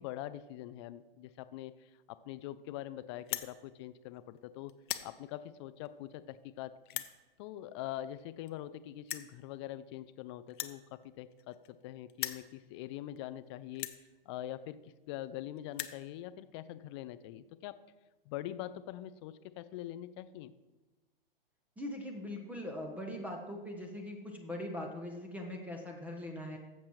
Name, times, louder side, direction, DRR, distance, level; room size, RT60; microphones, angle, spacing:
voice 1, 0.0-4.8 5.0-7.0 7.4-13.9 14.3-17.8 18.3-20.5, left 13 dB, 30° left, 14 dB, 0.4 m, -44 dB
sound 1, 3.2-3.5 4.2-4.4 4.7-5.1 5.9-6.0 6.9-7.1 8.2-8.3 8.5-8.6 9.1-9.3 10.5-11.8 12.1-12.5 13.2-13.3 13.7-14.0 14.9-15.0 15.2-15.3 15.6-16.0, left 12 dB, 55° left, 0.7 m, -39 dB
voice 2, 21.8-26.6, left 1 dB, 5° right, 2 dB, 0.9 m, -41 dB
14.0 x 7.3 x 3.1 m, 1.1 s
hypercardioid pair, 125°, 29 cm